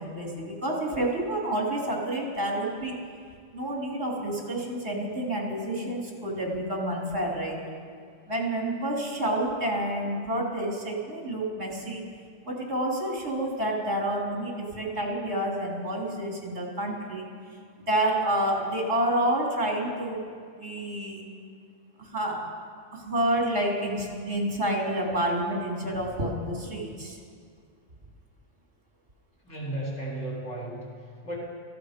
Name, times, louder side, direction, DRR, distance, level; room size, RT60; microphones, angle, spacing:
voice 1, 0.0-2.9 3.5-7.6 8.3-12.0 12.4-17.3 17.9-20.2 20.6-21.2 22.0-22.4 22.9-27.2, right 1 dB, 60° right, -2 dB, 3.3 m, -29 dB
voice 2, 29.4-31.4, right 1 dB, 90° left, -6 dB, 3.9 m, -35 dB
17.0 x 14.5 x 5.0 m, 2.1 s
omnidirectional pair, 1.3 m